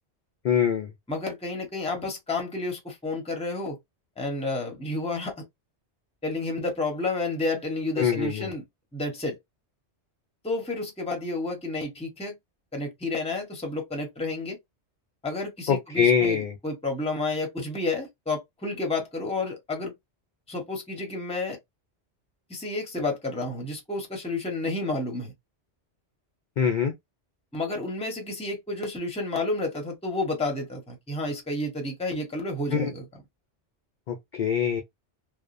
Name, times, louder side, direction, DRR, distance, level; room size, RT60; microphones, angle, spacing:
voice 1, 0.4-0.9 8.0-8.5 15.7-16.5 26.6-26.9 32.7-32.9 34.1-34.8, left 7 dB, 60° left, 0.5 m, -24 dB
voice 2, 1.1-3.8 4.2-5.5 6.2-8.6 8.9-9.4 10.4-12.3 12.7-14.6 15.2-19.9 20.5-21.6 22.5-25.3 27.5-33.1, left 2 dB, 5° left, 0.6 m, -30 dB
2.8 x 2.0 x 2.4 m
omnidirectional pair, 1.2 m